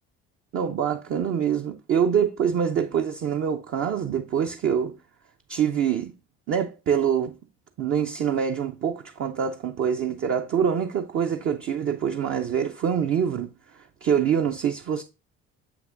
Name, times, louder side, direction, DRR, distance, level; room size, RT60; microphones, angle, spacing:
voice 1, 0.5-5.0 5.5-6.1 6.5-7.4 7.8-15.0, right 8 dB, 35° right, 0.6 m, -25 dB
7.0 x 5.9 x 2.4 m
figure-of-eight pair, 55°, 39 cm